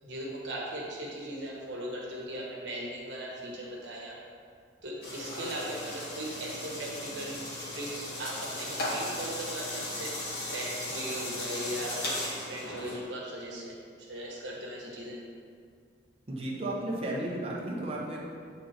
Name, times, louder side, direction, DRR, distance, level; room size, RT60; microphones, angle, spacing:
voice 1, 0.0-4.2 4.8-7.4 7.7-15.2, right 1 dB, 65° right, -4 dB, 1.4 m, -38 dB
sound 1, 5.0-13.0, left 1 dB, 55° left, 1.5 m, -36 dB
voice 2, 16.3-18.3, right 1 dB, 30° right, -4 dB, 1.0 m, -33 dB
8.3 x 3.9 x 4.4 m, 2.1 s
head